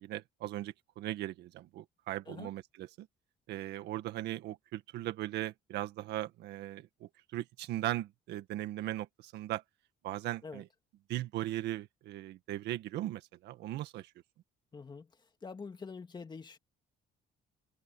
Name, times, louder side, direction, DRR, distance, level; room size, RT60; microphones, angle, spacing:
voice 1, 0.0-3.1 3.5-9.6 10.0-10.7 11.1-14.1, right 14 dB, 80° right, 1.8 m, -38 dB
voice 2, 14.7-15.1 15.4-16.6, left 5 dB, 25° left, 2.3 m, -45 dB
cardioid pair, 110°, 17 cm